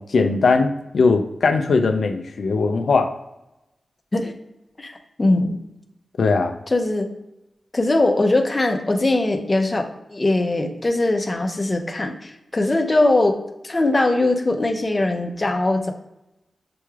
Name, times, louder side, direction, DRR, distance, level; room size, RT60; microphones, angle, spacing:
voice 1, 0.0-3.1 6.2-6.5, left 4 dB, 85° left, 5 dB, 0.4 m, -19 dB
voice 2, 4.8-5.6 6.7-7.1 7.7-13.4 13.6-15.9, left 2 dB, 30° left, 4 dB, 0.6 m, -21 dB
6.8 x 3.1 x 2.4 m, 0.91 s
wide cardioid pair, 100°, 0 cm